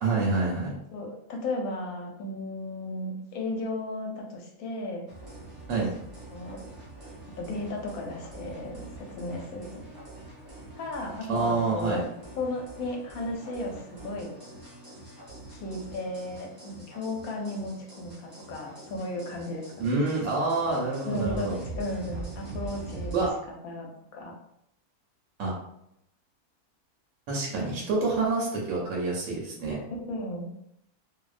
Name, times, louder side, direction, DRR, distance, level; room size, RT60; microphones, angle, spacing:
voice 1, 0.0-0.7 5.7-5.9 11.3-12.1 19.8-21.6 23.1-23.3 25.4-25.6 27.3-29.8, right 3 dB, 75° right, -4 dB, 1.0 m, -27 dB
voice 2, 0.9-5.1 6.3-6.6 7.4-9.7 10.8-12.1 12.4-14.3 15.5-19.9 21.0-23.3 23.6-23.9 24.1-24.3 30.1-30.5, left 2 dB, 75° left, 0 dB, 1.0 m, -35 dB
sound 1, 5.1-23.3, right 2 dB, 25° right, 0.4 m, -44 dB
2.6 x 2.1 x 2.4 m, 0.78 s
omnidirectional pair, 1.6 m